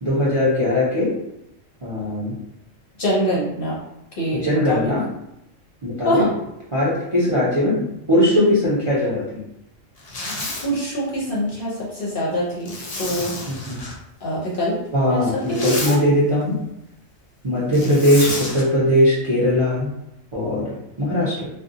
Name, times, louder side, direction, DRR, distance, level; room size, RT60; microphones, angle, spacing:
voice 1, 0.0-1.1 1.8-2.3 4.3-5.0 5.8-6.3 6.7-9.4 13.5-13.8 14.9-16.6 17.4-19.9 20.3-21.5, left 1 dB, 35° right, -8 dB, 0.5 m, -20 dB
voice 2, 3.0-3.8 4.2-4.8 6.0-6.3 10.6-13.3 14.2-14.8 15.1-16.0, equal, 55° left, -5 dB, 0.7 m, -24 dB
Zipper (clothing), 10.0-10.7 12.6-14.0 15.3-16.0 17.7-18.6, left 2 dB, 75° left, 0.3 m, -30 dB
2.6 x 2.3 x 2.5 m, 0.82 s
omnidirectional pair, 1.4 m